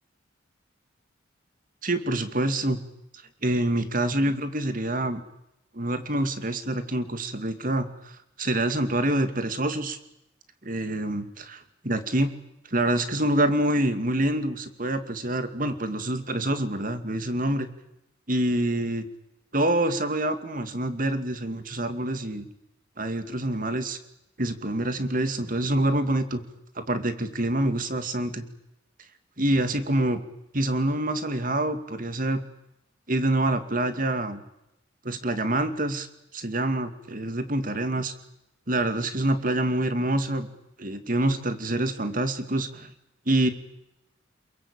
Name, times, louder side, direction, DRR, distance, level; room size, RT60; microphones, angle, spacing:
voice 1, 1.8-2.8 3.4-5.2 5.7-8.1 8.4-10.0 10.6-12.3 12.7-17.7 18.3-19.0 19.5-22.5 23.0-24.0 24.4-26.4 26.8-28.5 29.4-30.2 30.5-32.4 33.1-34.4 35.0-36.1 36.3-38.1 38.7-40.5 40.8-42.9 43.3-43.5, right 1 dB, 45° right, 9 dB, 2.5 m, -26 dB
27.5 x 22.5 x 8.9 m, 0.86 s
head